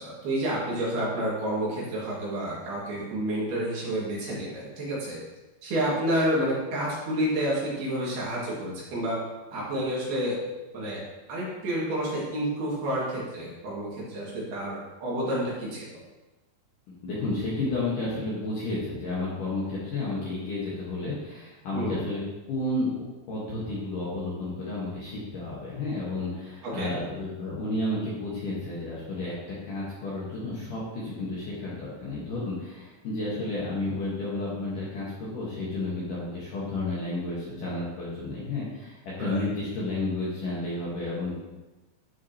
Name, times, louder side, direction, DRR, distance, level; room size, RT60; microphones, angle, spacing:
voice 1, 0.0-5.2 5.6-9.2 9.5-10.4 10.7-11.0 11.3-15.9 21.7-22.0 26.6-26.9 39.2-39.5, right 1 dB, 60° right, -6 dB, 3.7 m, -29 dB
voice 2, 17.0-22.2 22.5-41.3, left 2 dB, 60° left, -7 dB, 2.4 m, -32 dB
12.0 x 6.0 x 2.9 m, 1.1 s
omnidirectional pair, 5.4 m